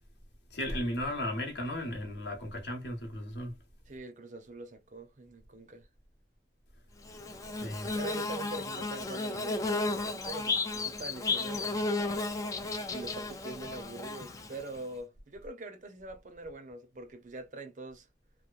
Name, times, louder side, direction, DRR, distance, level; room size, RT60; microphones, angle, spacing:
voice 1, 0.5-3.5 7.6-7.9, left 1 dB, 70° left, 1.0 m, -35 dB
voice 2, 3.9-5.9 7.9-11.7 12.9-18.1, right 2 dB, 40° right, 0.5 m, -44 dB
Bird / Buzz, 7.1-14.8, left 3 dB, 20° left, 0.3 m, -33 dB
2.9 x 2.1 x 2.3 m
head